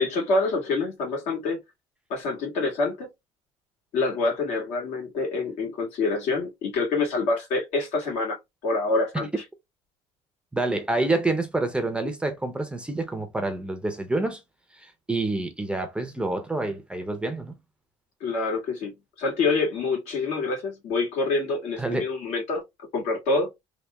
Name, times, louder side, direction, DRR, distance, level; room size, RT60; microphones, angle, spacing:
voice 1, 0.0-1.6 2.1-3.1 3.9-8.4 8.6-9.4 18.2-22.6 22.9-23.5, left 3 dB, 70° left, 2.0 m, -26 dB
voice 2, 10.5-14.4 14.8-17.5 21.8-22.1, right 2 dB, 10° right, 0.6 m, -27 dB
3.5 x 2.4 x 3.0 m
cardioid pair, 120°, 12 cm